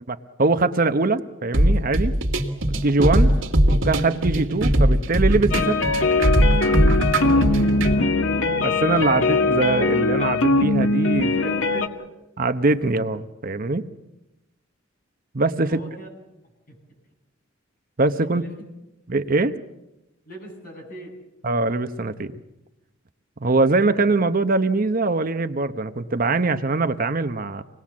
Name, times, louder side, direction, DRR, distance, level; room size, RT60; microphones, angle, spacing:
voice 1, 0.1-2.1 2.7-3.3 3.7-5.8 8.6-11.3 12.4-13.8 15.3-15.8 18.0-18.4 19.1-19.5 21.4-22.4 23.4-27.6, right 3 dB, 45° right, 9 dB, 0.9 m, -22 dB
sound 1, 1.5-7.9, right 1 dB, 80° right, 2.3 m, -20 dB
sound 2, 5.5-11.9, left 2 dB, 80° left, 1.8 m, -21 dB
voice 2, 7.0-8.5 11.2-12.1 15.6-16.2 16.7-16.8 18.3-18.5 20.3-21.1, equal, 45° left, 1 dB, 7.8 m, -40 dB
26.0 x 20.0 x 7.3 m, 0.93 s
head